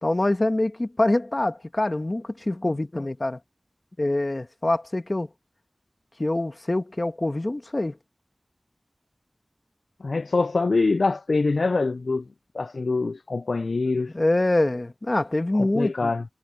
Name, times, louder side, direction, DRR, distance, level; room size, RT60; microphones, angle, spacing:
voice 1, 0.0-3.4 4.0-5.3 6.2-8.0 14.1-16.1, left 2 dB, 40° left, 1.6 m, -25 dB
voice 2, 10.0-12.2 12.5-14.1 15.5-16.2, left 3 dB, 85° left, 0.4 m, -24 dB
wide cardioid pair, 50°, 0 cm